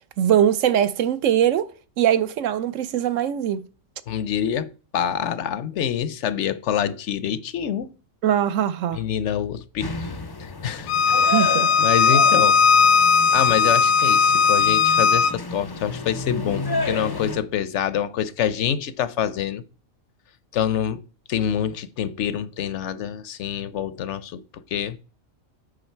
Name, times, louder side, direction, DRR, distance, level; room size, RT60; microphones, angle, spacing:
voice 1, 0.2-1.7 2.0-3.6 8.2-9.0 11.2-11.7, right 10 dB, 75° right, 1.0 m, -21 dB
voice 2, 4.1-7.9 8.9-9.9 10.4-11.5 11.8-12.6 13.3-19.6 20.5-21.0 21.3-25.0, left 9 dB, 70° left, 0.8 m, -26 dB
sound 1, 9.8-17.4, left 2 dB, 35° left, 0.3 m, -31 dB
Bowed string instrument, 10.9-15.3, left 5 dB, 90° left, 1.0 m, -17 dB
8.8 x 5.1 x 4.4 m
omnidirectional pair, 1.4 m